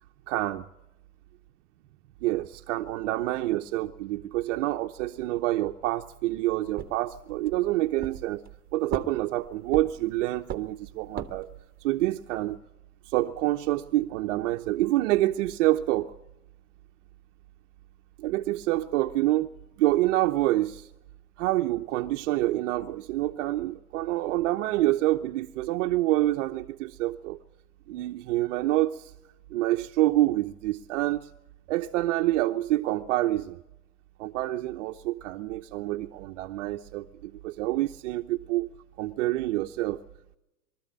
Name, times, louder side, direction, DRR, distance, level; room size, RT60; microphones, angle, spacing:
voice 1, 0.3-0.7 2.2-8.4 8.7-11.5 11.8-12.6 13.1-16.1 18.2-19.5 19.8-20.9 21.4-27.4 27.9-29.1 29.5-31.3 31.7-33.6 34.2-38.7 39.0-40.0, right 16 dB, 50° right, 5 dB, 0.9 m, -27 dB
sound 1, 6.8-7.6 8.0-8.6 8.9-10.1 10.5-11.6, right 8 dB, 20° right, 1.5 m, -36 dB
23.5 x 13.5 x 8.2 m, 0.91 s
hypercardioid pair, 120°, 47 cm